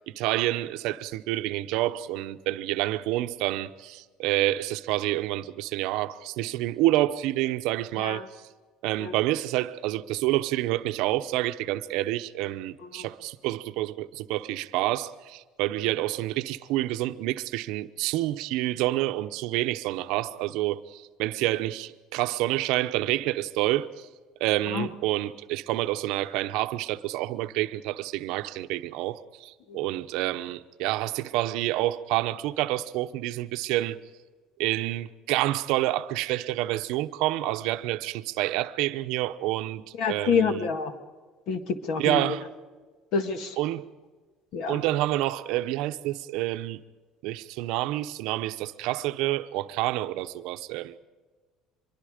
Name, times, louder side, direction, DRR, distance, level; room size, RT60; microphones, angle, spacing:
voice 1, 0.1-8.3 8.8-24.1 24.4-34.0 34.6-40.7 42.0-42.4 43.6-43.8 44.7-46.8 47.2-51.0, right 16 dB, 70° right, 0.8 m, -28 dB
voice 2, 40.0-40.9 41.5-42.4 43.1-43.6 44.5-44.8, left 5 dB, 55° left, 1.9 m, -28 dB
24.5 x 22.5 x 5.1 m
cardioid pair, 175°, 0 cm